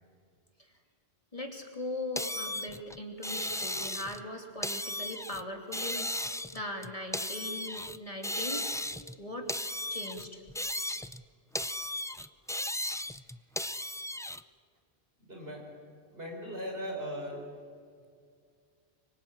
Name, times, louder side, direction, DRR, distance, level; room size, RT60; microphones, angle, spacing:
voice 1, 1.3-8.8 9.2-9.6 9.9-10.4, left 1 dB, 30° left, 2 dB, 2.9 m, -40 dB
sound 1, 2.2-4.2 4.6-5.4 5.7-9.2 9.5-11.2 11.5-14.4, left 1 dB, 5° left, 0.3 m, -35 dB
voice 2, 15.2-15.8 16.1-17.5, equal, 65° right, 0 dB, 6.0 m, -39 dB
24.5 x 24.5 x 8.9 m, 2.1 s
omnidirectional pair, 1.1 m